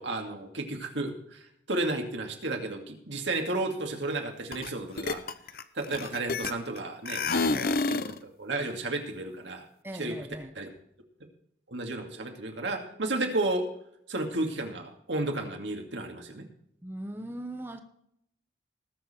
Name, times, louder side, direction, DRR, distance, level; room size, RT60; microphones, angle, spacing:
voice 1, 0.0-1.4 1.7-5.2 5.7-9.6 10.0-10.2 10.6-10.7 11.7-13.7 14.1-16.4, right 2 dB, 85° right, 3 dB, 2.4 m, -32 dB
sound 1, 4.5-4.7 5.0-6.8 7.1-8.2, left 4 dB, 55° left, 0.7 m, -29 dB
voice 2, 9.8-10.5 16.8-17.8, right 1 dB, 15° right, 6 dB, 1.0 m, -39 dB
20.0 x 6.7 x 4.4 m, 0.74 s
head